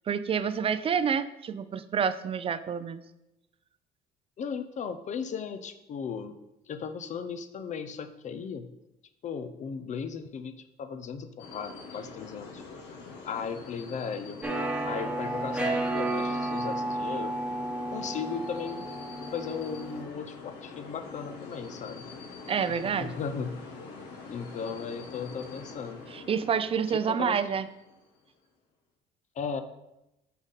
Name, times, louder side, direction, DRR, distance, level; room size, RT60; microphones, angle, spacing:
voice 1, 0.1-3.0 22.5-23.2 26.1-27.6, right 7 dB, 35° right, 13 dB, 0.4 m, -28 dB
voice 2, 4.4-6.3 6.7-8.7 9.2-12.6 13.2-14.4 14.9-17.3 17.9-18.8 19.3-22.0 22.6-22.7 23.0-23.6 24.3-26.0 26.9-27.4 29.4-29.6, left 6 dB, 45° left, 9 dB, 0.5 m, -36 dB
sound 1, 11.4-28.2, left 4 dB, 80° left, 1.4 m, -45 dB
sound 2, 14.4-20.0, right 2 dB, 5° right, 1.1 m, -32 dB
9.0 x 3.8 x 4.0 m, 0.92 s
cardioid pair, 110°, 17 cm